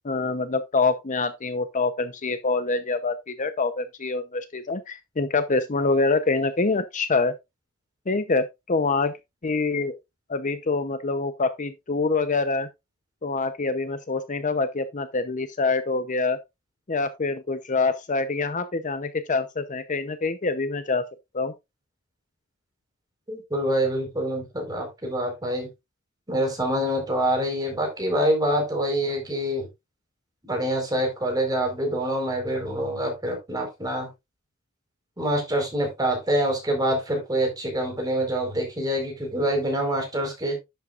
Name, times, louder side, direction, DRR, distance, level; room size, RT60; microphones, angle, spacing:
voice 1, 0.0-7.3 8.1-9.1 9.4-10.0 10.3-12.7 13.2-16.4 16.9-21.0 21.3-21.5, left 3 dB, 40° left, 0.7 m, -25 dB
voice 2, 23.3-25.7 26.3-29.7 30.4-34.1 35.2-40.6, right 1 dB, 20° right, 4.4 m, -26 dB
11.0 x 7.9 x 2.5 m
head